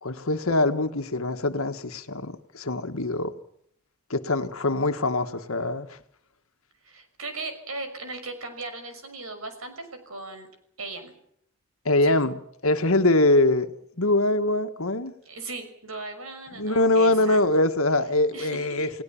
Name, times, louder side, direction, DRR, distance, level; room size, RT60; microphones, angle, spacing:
voice 1, 0.0-3.3 4.1-6.0 11.8-12.3 12.6-13.7 14.0-15.1 16.5-18.9, left 2 dB, 75° left, 1.8 m, -23 dB
voice 2, 6.8-10.5 10.8-11.1 15.3-17.4 18.3-18.9, right 3 dB, 80° right, 5.9 m, -37 dB
29.5 x 18.5 x 7.3 m
head